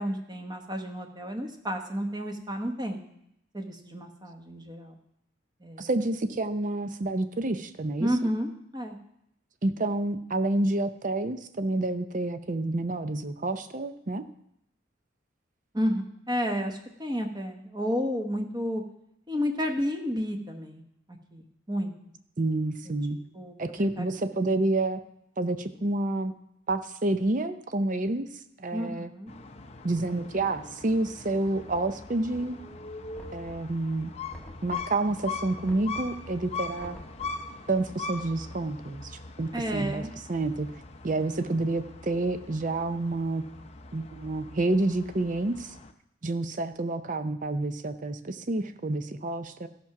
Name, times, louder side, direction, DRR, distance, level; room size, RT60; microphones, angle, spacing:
voice 1, 0.0-3.0 3.5-5.0 5.6-5.9 8.0-9.0 15.7-18.8 19.3-20.8 21.1-21.9 23.3-24.1 28.7-29.3 39.5-40.1, equal, 20° right, 4 dB, 1.0 m, -31 dB
voice 2, 5.8-8.1 9.6-14.3 22.4-23.2 23.6-25.0 25.4-26.3 26.7-28.3 28.6-29.1 29.8-32.6 33.3-34.1 34.6-37.0 37.7-39.1 39.4-40.0 40.3-40.7 41.0-43.4 43.9-45.7 46.2-49.7, right 2 dB, 40° right, 10 dB, 0.6 m, -29 dB
sound 1, 29.3-45.9, left 4 dB, 30° left, 0.6 m, -41 dB
Knock, 33.2-33.9 34.3-35.1 35.6-36.3 36.8-37.5, left 1 dB, 5° left, 0.9 m, -48 dB
13.5 x 6.0 x 5.8 m, 0.77 s
head